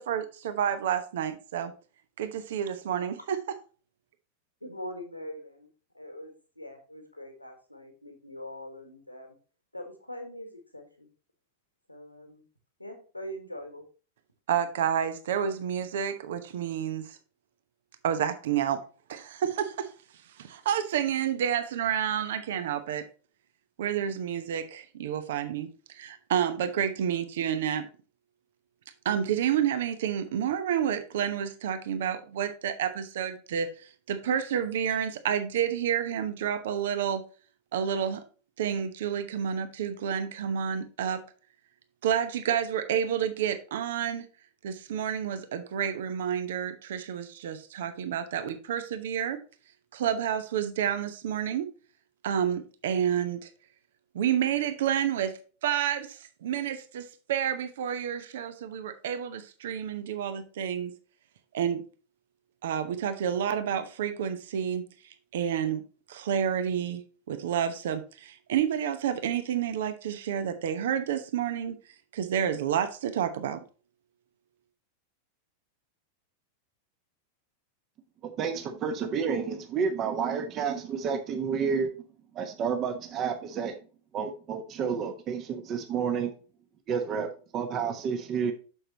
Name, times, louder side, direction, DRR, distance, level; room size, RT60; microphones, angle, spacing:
voice 1, 0.0-1.7 2.2-3.4 14.5-17.2 18.0-18.8 19.1-19.9 20.4-23.1 23.8-25.7 25.9-27.9 29.0-33.7 34.1-37.2 37.7-38.2 38.6-41.2 42.0-44.3 44.6-49.4 49.9-51.7 52.2-53.5 54.1-55.3 55.6-60.9 61.5-61.8 62.6-64.8 65.3-65.8 66.1-67.0 67.3-71.8 72.1-73.6, right 9 dB, 60° right, 11 dB, 0.9 m, -29 dB
voice 2, 4.6-5.7 5.9-9.4 9.7-11.1 11.9-12.4 12.8-13.8, equal, 90° left, 4 dB, 1.6 m, -42 dB
voice 3, 78.2-81.9 82.3-83.7 84.1-86.3 86.9-88.5, right 6 dB, 30° right, 7 dB, 1.1 m, -30 dB
7.7 x 6.5 x 2.9 m, 0.36 s
figure-of-eight pair, 90°, 0 cm